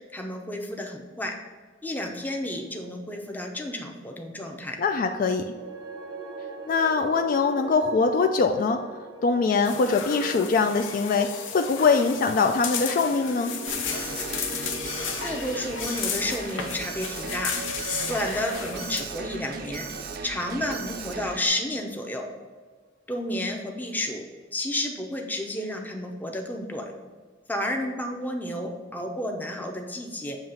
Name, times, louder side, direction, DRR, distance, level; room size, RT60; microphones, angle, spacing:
voice 1, 0.1-1.3 1.8-4.8 15.2-17.5 18.1-19.9 20.2-22.2 23.1-24.3 24.5-26.9 27.5-30.4, left 1 dB, 10° left, 3 dB, 0.6 m, -31 dB
voice 2, 4.8-5.4 6.7-8.8 9.2-13.5, left 4 dB, 45° left, 6 dB, 0.3 m, -23 dB
sound 1, 5.4-21.7, right 2 dB, 80° right, 0.8 m, -41 dB
sound 2, 9.6-19.0, left 6 dB, 80° left, 0.7 m, -34 dB
Alarm, 13.7-21.5, right 5 dB, 50° right, 0.5 m, -38 dB
7.3 x 2.9 x 5.5 m, 1.4 s
head